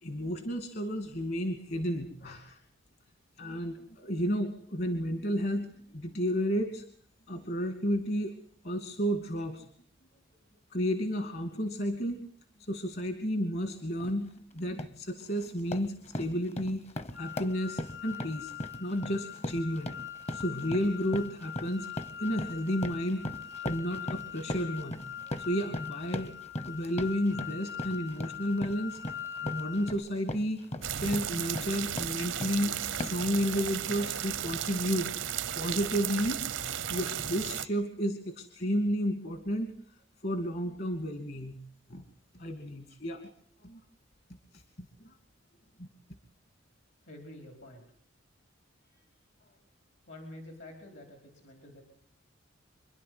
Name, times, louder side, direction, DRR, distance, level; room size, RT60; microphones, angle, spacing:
voice 1, 0.0-2.6 3.4-5.7 5.9-6.8 7.3-8.3 8.6-9.6 10.7-12.2 12.6-16.9 17.1-18.5 18.8-20.0 20.3-21.9 22.2-25.0 25.4-26.3 26.6-29.0 29.4-30.7 31.0-35.3 35.5-36.4 36.9-39.7 40.2-41.6 41.9-42.0 42.4-43.2 43.6-43.8 44.5-44.6 45.0-45.1 45.8-45.9, equal, 55° left, 6 dB, 2.4 m, -32 dB
sound 1, 14.0-14.2 14.6-15.0 15.4-32.6 33.0-33.3, left 1 dB, 35° left, 1.0 m, -39 dB
sound 2, 17.1-29.9, left 9 dB, 90° left, 6.4 m, -42 dB
sound 3, 30.8-37.7, right 10 dB, 85° right, 0.9 m, -35 dB
voice 2, 47.0-47.8 48.8-49.1 49.4-49.6 50.1-51.8, left 1 dB, 70° left, 3 dB, 4.7 m, -49 dB
27.0 x 11.5 x 9.6 m, 0.64 s
head